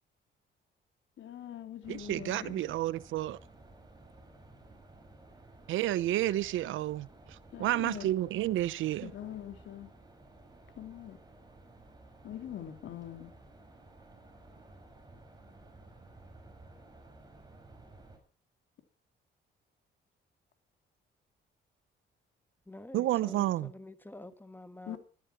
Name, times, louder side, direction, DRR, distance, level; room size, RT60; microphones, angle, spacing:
voice 1, 1.2-2.7 7.5-8.1 9.0-9.9 10.8-11.2 12.2-13.3 24.9-25.0, left 10 dB, 70° left, 3.0 m, -43 dB
sound 1, 1.8-18.2, right 2 dB, 20° right, 6.2 m, -55 dB
voice 2, 1.9-3.4 5.7-9.1 22.9-23.7, right 14 dB, 80° right, 0.7 m, -31 dB
voice 3, 22.7-25.0, left 1 dB, 10° left, 1.3 m, -48 dB
15.0 x 13.5 x 5.8 m
cardioid pair, 90°, 20 cm